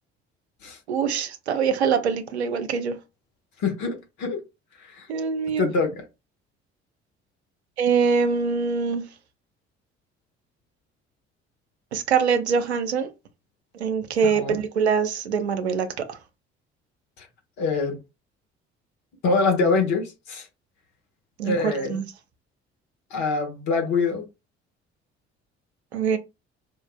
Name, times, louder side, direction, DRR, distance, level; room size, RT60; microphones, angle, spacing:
voice 1, 0.9-3.0 5.1-5.7 7.8-9.0 11.9-13.1 13.7-16.2 21.4-22.0 25.9-26.2, right 6 dB, 90° right, 0.5 m, -24 dB
voice 2, 3.6-4.4 4.8-5.1 5.6-6.0 14.2-14.6 17.2-17.3 17.6-18.0 19.2-20.5 21.4-22.0 23.1-24.2, left 4 dB, 65° left, 1.3 m, -25 dB
4.9 x 2.3 x 2.2 m
figure-of-eight pair, 50°, 32 cm